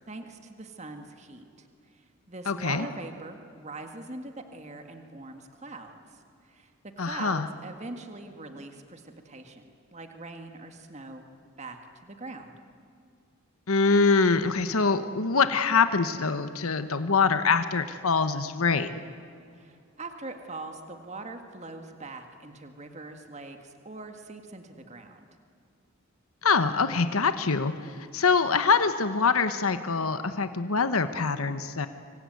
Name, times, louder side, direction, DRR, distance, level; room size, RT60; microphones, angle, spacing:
voice 1, 0.1-9.6 9.9-11.3 11.6-12.5 19.5-25.2, right 2 dB, 30° right, 5 dB, 1.9 m, -42 dB
voice 2, 2.5-2.8 7.0-7.5 13.7-19.0 26.4-27.7 28.1-31.9, left 4 dB, 85° left, 10 dB, 1.1 m, -24 dB
26.0 x 24.5 x 9.4 m, 2.3 s
head